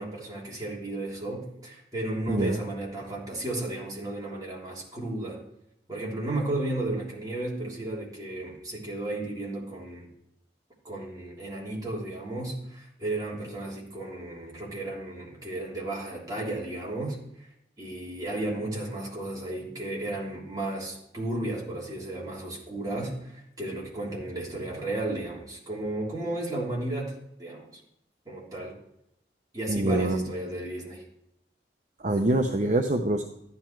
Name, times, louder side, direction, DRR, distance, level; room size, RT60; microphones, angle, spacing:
voice 1, 0.0-5.4 5.9-10.1 10.8-17.5 17.8-27.7 28.2-28.8 29.5-31.0, right 2 dB, 20° right, -4 dB, 3.1 m, -34 dB
voice 2, 2.3-2.6 29.7-30.3 32.0-33.2, right 1 dB, 40° right, 4 dB, 0.7 m, -25 dB
13.0 x 9.8 x 4.5 m, 0.80 s
head